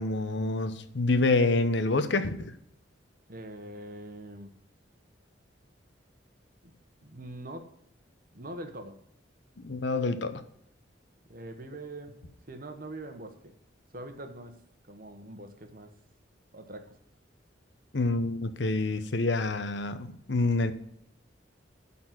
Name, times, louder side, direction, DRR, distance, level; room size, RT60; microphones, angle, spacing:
voice 1, 0.0-2.5 9.6-10.4 17.9-20.7, left 2 dB, 65° left, 0.9 m, -27 dB
voice 2, 3.3-4.5 6.6-6.7 7.0-7.7 8.3-9.0 11.3-13.5 13.9-14.6 14.9-15.9 16.5-17.0, right 1 dB, 45° right, 1.2 m, -43 dB
12.0 x 4.3 x 7.6 m
head